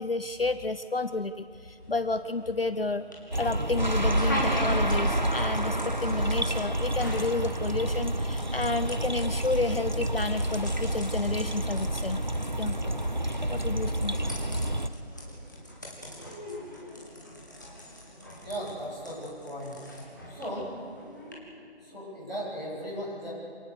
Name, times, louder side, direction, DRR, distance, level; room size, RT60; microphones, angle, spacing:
voice 1, 0.0-3.0 3.3-12.2 12.6-12.8 13.5-14.2, left 3 dB, 55° left, 11 dB, 0.8 m, -31 dB
sound 1, 1.8-21.3, equal, 15° left, 2.0 m, -42 dB
sound 2, 3.3-14.9, right 1 dB, 45° right, 0.6 m, -29 dB
voice 2, 18.4-19.8 20.3-20.7 21.8-23.3, equal, 5° right, -16 dB, 4.3 m, -37 dB
27.5 x 18.5 x 6.8 m, 2.7 s
figure-of-eight pair, 175°, 34 cm